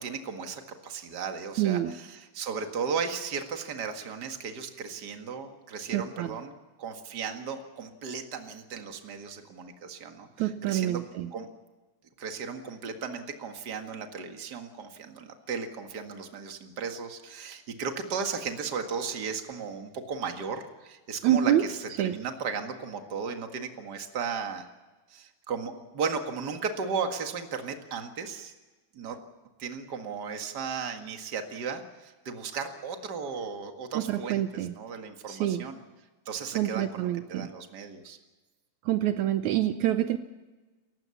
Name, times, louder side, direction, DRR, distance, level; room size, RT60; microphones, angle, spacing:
voice 1, 0.0-6.5 6.8-11.0 11.3-11.5 12.2-24.7 25.1-28.5 28.9-29.2 29.6-35.8 36.3-38.2, right 5 dB, 40° right, 5 dB, 2.0 m, -35 dB
voice 2, 1.6-1.9 5.9-6.4 10.4-11.3 21.2-21.6 22.0-22.2 33.9-34.7 35.3-35.7 36.5-37.5 38.9-40.2, right 12 dB, 75° right, 10 dB, 2.1 m, -27 dB
29.0 x 15.5 x 7.1 m, 1.2 s
omnidirectional pair, 3.5 m